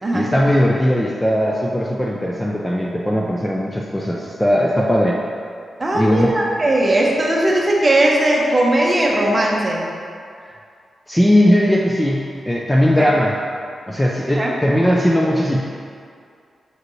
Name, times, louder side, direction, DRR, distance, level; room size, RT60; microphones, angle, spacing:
voice 1, 0.1-5.2 5.9-6.4 10.4-10.5 11.1-13.4 13.9-15.6, equal, 10° left, -3 dB, 0.4 m, -18 dB
voice 2, 5.8-9.8 13.0-13.1 14.4-14.5, right 1 dB, 20° right, -3 dB, 0.9 m, -18 dB
6.3 x 5.0 x 3.1 m, 2.3 s
wide cardioid pair, 155°, 0 cm